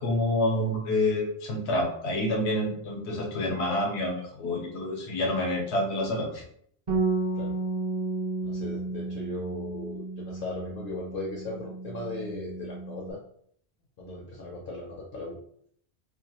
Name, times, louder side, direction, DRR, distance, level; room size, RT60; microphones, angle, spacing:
voice 1, 0.0-6.4, left 1 dB, 90° left, 1 dB, 1.0 m, -28 dB
Bass guitar, 6.9-13.1, right 3 dB, 45° right, 0.9 m, -32 dB
voice 2, 8.4-13.2 14.0-15.4, left 2 dB, 60° left, -2 dB, 0.7 m, -37 dB
2.4 x 2.3 x 2.9 m, 0.65 s
omnidirectional pair, 1.1 m